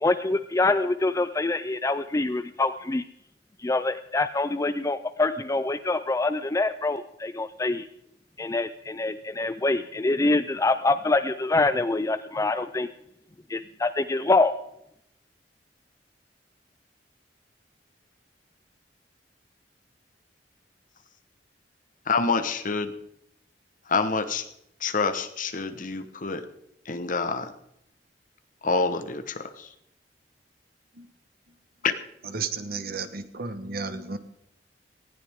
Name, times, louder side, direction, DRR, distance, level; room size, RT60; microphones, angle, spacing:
voice 1, 0.0-3.0 3.6-7.9 8.4-12.9 13.5-14.5, left 2 dB, 20° left, 12 dB, 0.4 m, -25 dB
voice 2, 22.1-22.9 23.9-24.5 24.8-26.5 26.8-27.5 28.6-29.7 31.8-31.9, left 4 dB, 50° left, 9 dB, 1.2 m, -27 dB
voice 3, 32.2-34.2, right 4 dB, 60° right, 10 dB, 1.3 m, -33 dB
19.0 x 15.5 x 3.6 m, 0.78 s
head